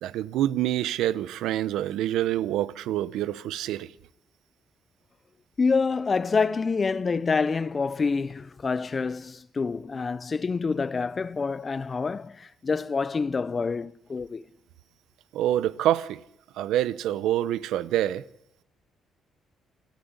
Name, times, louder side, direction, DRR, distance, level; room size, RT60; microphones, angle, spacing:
voice 1, 0.0-3.9 15.3-16.2 16.6-18.2, right 12 dB, 90° right, 0.8 m, -26 dB
voice 2, 5.6-14.4, left 4 dB, 35° left, 0.7 m, -27 dB
28.0 x 10.5 x 9.7 m
cardioid pair, 90°, 0 cm